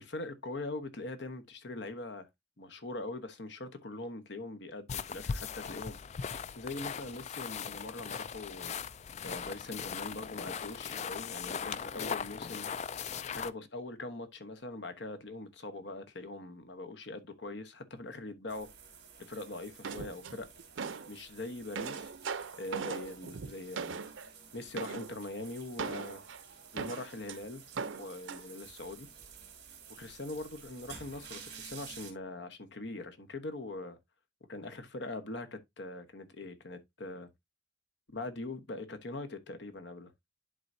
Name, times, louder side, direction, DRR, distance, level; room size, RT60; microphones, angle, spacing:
voice 1, 0.0-2.3 2.6-6.0 6.5-8.7 9.2-12.7 13.3-18.7 19.3-20.5 21.1-22.1 22.5-24.0 24.5-26.2 26.7-27.6 28.0-29.1 30.0-34.0 34.5-37.3 38.1-40.1, left 2 dB, 65° left, 1.1 m, -42 dB
sound 1, 4.9-13.5, left 6 dB, 35° left, 0.3 m, -39 dB
sound 2, 18.5-32.1, right 7 dB, 60° right, 2.6 m, -52 dB
sound 3, 19.8-21.1 21.5-24.3 24.8-25.2 25.8-27.4 27.8-28.4, right 5 dB, 85° right, 0.6 m, -39 dB
11.0 x 3.9 x 2.7 m
head